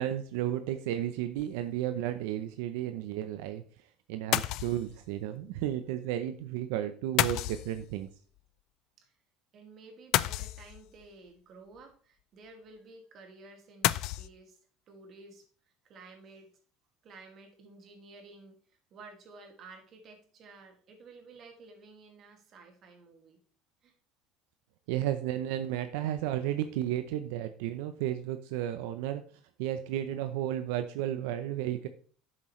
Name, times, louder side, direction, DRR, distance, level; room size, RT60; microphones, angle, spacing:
voice 1, 0.0-3.6 4.1-8.1 24.9-29.2 29.6-31.9, right 12 dB, 85° right, 9 dB, 0.7 m, -33 dB
sound 1, 1.4-1.6 4.3-5.0 7.2-8.1 10.1-11.1 13.8-14.3, left 15 dB, 55° left, 0.4 m, -30 dB
voice 2, 9.5-14.6 14.9-15.5 15.8-16.5 17.0-23.4 23.8-23.9, right 3 dB, 40° right, 3 dB, 2.2 m, -53 dB
9.9 x 7.5 x 3.2 m, 0.43 s
cardioid pair, 145°, 0 cm